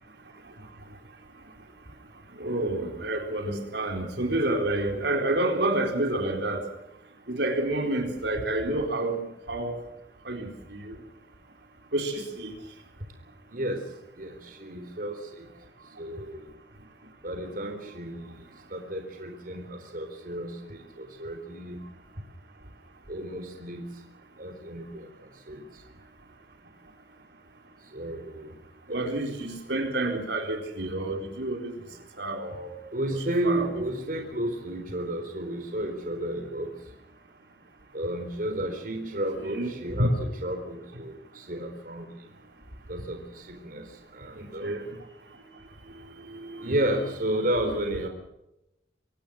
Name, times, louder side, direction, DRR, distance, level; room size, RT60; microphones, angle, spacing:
voice 1, 2.4-6.6 7.3-9.7 10.2-11.0 11.9-12.5 28.9-31.7 32.2-32.8 33.4-33.7 39.4-40.2 44.4-44.9 46.3-46.7, right 1 dB, 70° right, 3 dB, 4.3 m, -29 dB
voice 2, 13.5-13.8 14.2-15.2 16.0-16.4 17.2-18.4 18.7-21.8 23.1-23.9 24.4-25.1 25.5-25.6 27.9-28.5 32.9-36.7 37.9-42.1 42.9-43.8 44.1-44.8 46.6-48.1, right 1 dB, 50° right, 5 dB, 4.1 m, -32 dB
25.5 x 18.0 x 6.4 m, 0.86 s
head